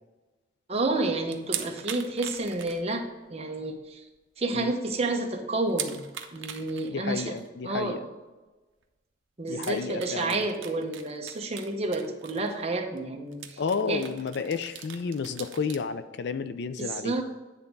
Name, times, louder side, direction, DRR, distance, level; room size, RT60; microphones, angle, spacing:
voice 1, 0.7-4.0 4.4-6.0 6.3-7.3 7.6-8.0 9.4-13.4 13.9-14.0 16.8-17.2, right 2 dB, 30° right, 3 dB, 0.8 m, -30 dB
sound 1, 1.3-3.3 3.6-3.7 4.2-4.3 4.5-4.6 5.7-6.9 7.4-7.5 8.8-8.9 9.5-12.7 13.0-13.1 13.3-15.8, right 10 dB, 75° right, 0.7 m, -40 dB
voice 2, 6.9-8.0 9.5-10.5 13.6-17.2, left 5 dB, 60° left, 12 dB, 0.4 m, -31 dB
9.8 x 3.5 x 5.2 m, 1.2 s
head